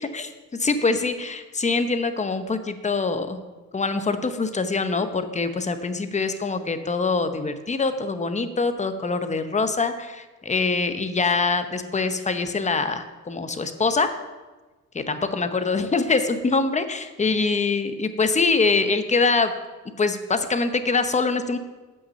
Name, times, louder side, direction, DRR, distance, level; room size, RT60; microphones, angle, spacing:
voice 1, 0.0-3.4 3.7-14.1 14.9-19.5 20.0-21.6, left 4 dB, 25° left, 9 dB, 0.8 m, -24 dB
8.0 x 6.1 x 6.9 m, 1.2 s
cardioid pair, 90°, 30 cm